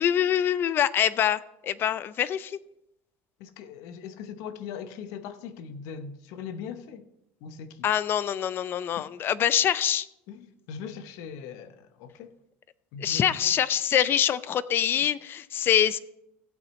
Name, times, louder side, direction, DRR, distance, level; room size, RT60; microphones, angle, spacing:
voice 1, 0.0-2.6 7.8-10.1 13.0-16.0, left 10 dB, 40° left, 0.5 m, -25 dB
voice 2, 3.4-7.1 7.4-7.9 9.0-9.1 10.3-12.3 12.9-13.5, left 6 dB, 70° left, 0.9 m, -40 dB
15.5 x 8.6 x 3.2 m
supercardioid pair, 120°, 6 cm